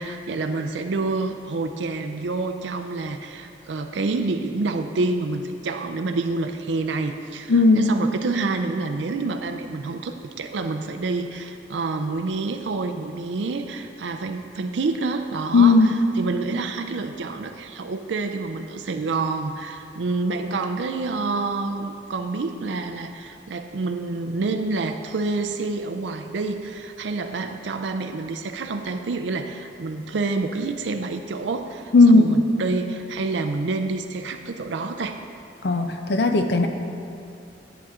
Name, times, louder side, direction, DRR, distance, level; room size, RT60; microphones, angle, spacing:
voice 1, 0.0-35.2, right 3 dB, 85° right, 6 dB, 0.5 m, -28 dB
voice 2, 7.5-7.9 15.5-15.9 31.9-32.3 35.6-36.7, left 3 dB, 65° left, 6 dB, 0.6 m, -16 dB
10.5 x 8.9 x 3.7 m, 2.7 s
head